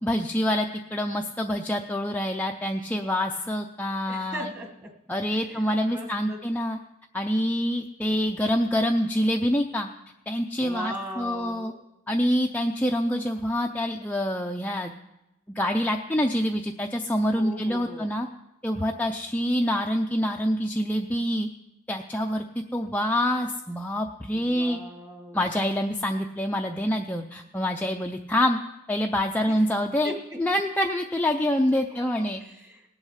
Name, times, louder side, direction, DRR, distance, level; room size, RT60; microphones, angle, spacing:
voice 1, 0.0-4.5 5.1-6.8 7.1-9.9 10.3-11.7 12.1-14.9 15.6-18.3 18.6-21.5 21.9-22.4 22.7-24.8 25.3-28.6 28.9-30.1 30.4-32.4, equal, 10° left, 2 dB, 0.5 m, -26 dB
voice 2, 4.1-4.9 5.3-6.4 10.6-11.8 17.3-18.1 24.3-25.4 29.5-29.6 30.0-30.4 31.9-32.9, equal, 15° right, 3 dB, 1.5 m, -39 dB
18.5 x 8.1 x 5.7 m, 0.92 s
head